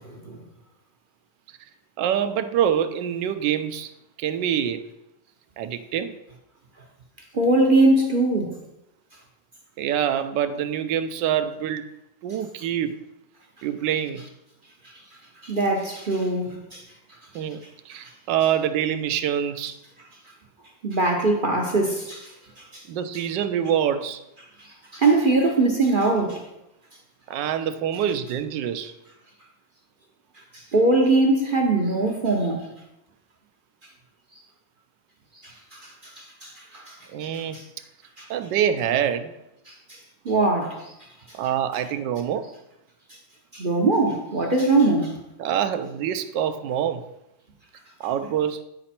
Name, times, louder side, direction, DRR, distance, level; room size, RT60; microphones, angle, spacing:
voice 1, 0.0-0.4 7.3-8.6 15.4-16.8 20.8-22.8 24.6-26.4 30.5-32.7 35.4-37.0 37.3-37.6 38.2-38.3 39.7-40.0 40.2-40.9 43.5-45.2, right 2 dB, 45° right, 0.7 m, -22 dB
voice 2, 2.0-3.9 4.2-4.8 5.6-6.1 9.8-11.9 12.2-12.9 13.6-14.2 17.3-19.8 22.9-24.2 27.3-28.9 37.1-37.6 38.3-39.3 41.3-42.5 45.4-47.0 48.0-48.6, right 9 dB, 75° right, 1.3 m, -25 dB
9.5 x 5.1 x 4.3 m
omnidirectional pair, 2.0 m